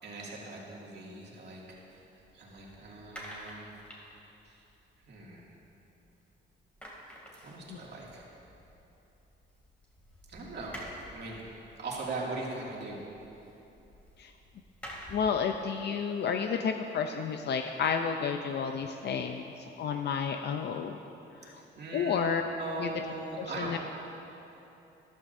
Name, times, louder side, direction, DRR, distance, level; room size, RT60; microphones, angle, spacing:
voice 1, 0.0-2.0 2.3-3.7 4.4-4.6 5.0-5.5 7.4-8.3 10.3-10.8 11.1-11.4 11.8-13.0 21.5-23.8, right 2 dB, 60° right, -4 dB, 2.3 m, -40 dB
sound 1, 1.7-6.3 6.5-15.4, equal, 5° left, 2.5 m, -50 dB
voice 2, 15.1-21.0 21.4-21.6 21.9-22.4 22.8-22.9 23.6-23.8, left 6 dB, 60° left, 5 dB, 0.5 m, -31 dB
14.0 x 11.5 x 2.7 m, 3.0 s
cardioid pair, 90°, 20 cm